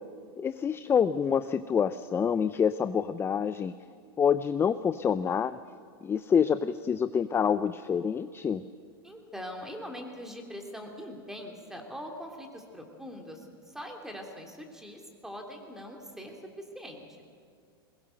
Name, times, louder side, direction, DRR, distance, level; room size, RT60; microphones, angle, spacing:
voice 1, 0.4-3.7 4.2-5.6 6.0-8.6, left 7 dB, 20° left, 13 dB, 0.5 m, -27 dB
voice 2, 9.0-17.0, equal, 5° right, 2 dB, 3.2 m, -42 dB
22.0 x 19.5 x 6.6 m, 2.1 s
hypercardioid pair, 115°, 13 cm